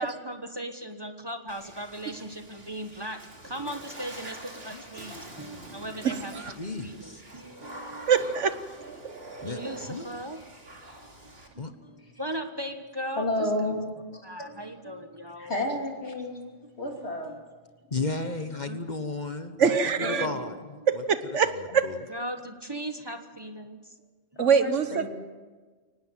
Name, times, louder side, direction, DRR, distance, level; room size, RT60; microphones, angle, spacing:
voice 1, 0.0-6.3 6.8-8.1 9.4-13.8 14.2-15.5 17.0-17.4 18.2-18.4 18.7-18.8 20.1-20.6 22.1-23.9 24.3-24.4, right 1 dB, 20° right, 6 dB, 1.3 m, -38 dB
Water / Splash splatter, 1.5-11.5, right 2 dB, 55° right, 3.1 m, -45 dB
voice 2, 4.7-5.1 6.4-7.2 9.4-9.6 9.9-10.1 11.6-11.7 17.9-21.0 21.4-22.0, left 3 dB, 40° left, 8 dB, 1.2 m, -34 dB
voice 3, 8.1-8.5 19.6-20.3 20.9-21.8 24.4-25.1, right 6 dB, 80° right, 11 dB, 1.4 m, -23 dB
voice 4, 13.2-14.2 15.4-17.3 20.0-20.5 24.4-25.1, left 1 dB, 65° left, 1 dB, 3.4 m, -31 dB
24.0 x 19.0 x 7.6 m, 1.4 s
omnidirectional pair, 1.2 m